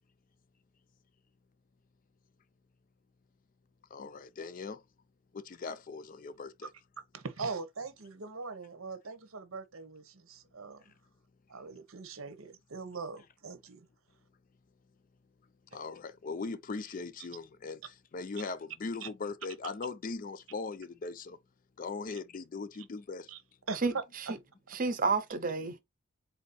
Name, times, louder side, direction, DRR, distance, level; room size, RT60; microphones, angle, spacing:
voice 1, 3.9-4.8 5.3-6.7 15.7-21.4 21.8-23.3, left 4 dB, 40° left, 0.4 m, -40 dB
voice 2, 7.1-10.8 11.5-13.9 19.0-19.1 23.3-23.4 23.7-23.8, right 4 dB, 85° right, 0.9 m, -41 dB
voice 3, 23.8-24.4 24.7-25.8, right 4 dB, 40° right, 0.7 m, -31 dB
4.1 x 2.7 x 4.1 m
head